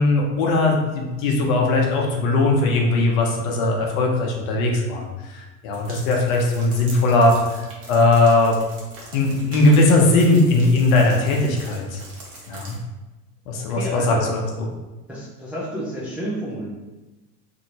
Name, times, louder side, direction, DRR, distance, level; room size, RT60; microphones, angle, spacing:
voice 1, 0.0-7.3 7.9-8.6 9.1-12.0 12.5-12.8 13.5-14.7, left 2 dB, 60° left, 0 dB, 0.8 m, -19 dB
sound 1, 5.7-12.8, right 2 dB, 65° right, 1.1 m, -42 dB
voice 2, 13.6-14.2 15.1-16.7, equal, 5° right, -7 dB, 0.4 m, -30 dB
2.6 x 2.6 x 2.8 m, 1.1 s
hypercardioid pair, 80°, 48 cm